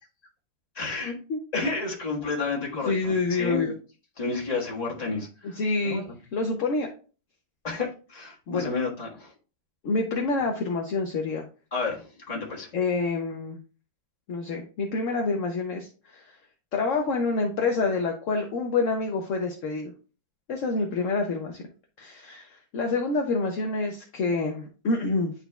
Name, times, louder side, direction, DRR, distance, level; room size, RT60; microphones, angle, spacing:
voice 1, 0.7-1.2 1.5-3.7 4.2-5.6 5.8-6.2 7.6-9.3 11.7-12.7, left 4 dB, 20° left, 1.5 m, -31 dB
voice 2, 2.9-3.7 5.4-6.0 6.3-6.9 8.5-8.7 9.8-11.5 12.7-13.6 14.3-16.3 16.7-19.9 20.5-21.6 22.0-25.3, left 3 dB, 55° left, 0.9 m, -27 dB
10.5 x 4.2 x 2.3 m
omnidirectional pair, 2.0 m